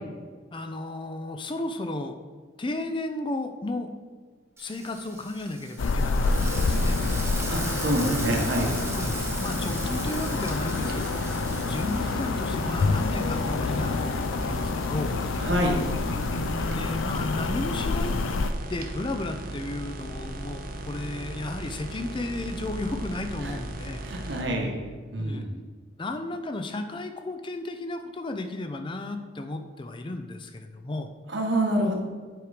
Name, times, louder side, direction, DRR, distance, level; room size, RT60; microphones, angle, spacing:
voice 1, 0.5-2.2 2.6-3.9 4.6-6.3 6.6-7.0 9.0-11.2 11.5-15.2 16.7-18.2 18.7-24.0 25.2-25.4 26.0-31.1, left 2 dB, 25° left, 7 dB, 0.4 m, -34 dB
Frying (food), 4.6-14.3, right 3 dB, 15° right, 0.8 m, -40 dB
sound 1, 5.8-18.5, left 3 dB, 80° left, 0.4 m, -28 dB
sound 2, 6.2-24.4, right 2 dB, 45° right, 0.7 m, -36 dB
voice 2, 7.5-8.7 15.4-15.8 23.4-23.6 24.0-24.8 25.1-25.6 31.3-32.0, right 1 dB, 65° right, 0 dB, 1.4 m, -26 dB
7.7 x 4.8 x 5.0 m, 1.5 s
head